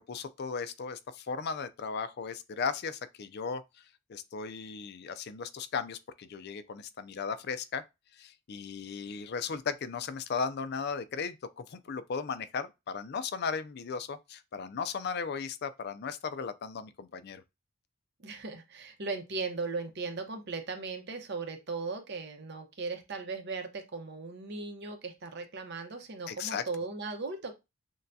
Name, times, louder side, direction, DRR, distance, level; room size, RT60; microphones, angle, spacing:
voice 1, 0.0-3.8 4.1-7.8 8.1-17.4 26.3-26.6, left 5 dB, 50° left, 0.4 m, -36 dB
voice 2, 18.2-27.5, right 4 dB, 50° right, 0.8 m, -37 dB
6.4 x 2.3 x 2.7 m
head